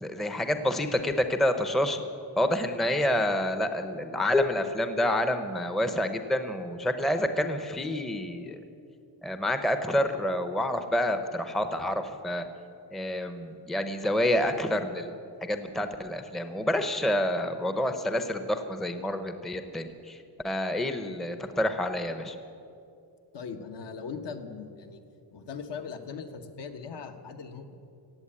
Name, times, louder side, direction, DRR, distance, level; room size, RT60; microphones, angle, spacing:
voice 1, 0.0-2.0 2.4-8.6 9.2-12.4 12.9-15.1 15.4-22.4, left 1 dB, ahead, 8 dB, 0.6 m, -28 dB
voice 2, 23.3-25.0 25.3-27.8, left 5 dB, 65° left, 6 dB, 1.3 m, -39 dB
16.5 x 7.9 x 8.7 m, 2.6 s
wide cardioid pair, 155°, 44 cm